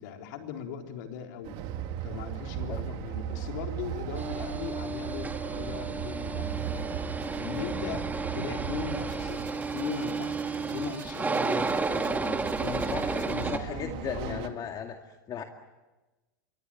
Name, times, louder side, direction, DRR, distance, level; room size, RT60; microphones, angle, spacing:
voice 1, 0.0-1.7 2.0-6.6 7.3-14.6, left 8 dB, 65° left, 3 dB, 4.0 m, -39 dB
Train, 1.4-9.9 11.8-14.5, right 10 dB, 55° right, 2.2 m, -37 dB
sound 1, 4.1-13.6, right 3 dB, 15° right, 1.8 m, -32 dB
sound 2, 8.8-13.7, right 7 dB, 85° right, 3.2 m, -51 dB
voice 2, 13.5-15.0 15.3-15.4, left 8 dB, 35° left, 4 dB, 2.2 m, -36 dB
26.5 x 23.0 x 8.8 m, 1.1 s
hypercardioid pair, 95°, 11 cm